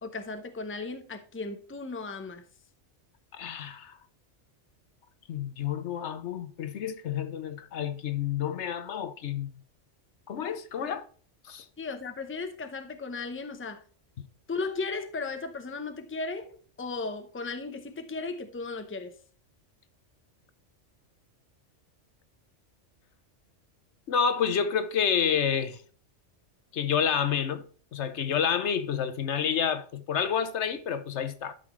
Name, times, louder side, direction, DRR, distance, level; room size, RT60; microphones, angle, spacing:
voice 1, 0.0-2.4 11.8-13.8 14.5-19.2, left 3 dB, 10° left, 0.7 m, -36 dB
voice 2, 3.3-4.0 5.3-9.5 10.3-11.1 11.4-11.7 24.1-25.8 26.7-27.6 27.9-31.5, left 7 dB, 70° left, 1.0 m, -29 dB
11.5 x 5.8 x 3.1 m
omnidirectional pair, 1.3 m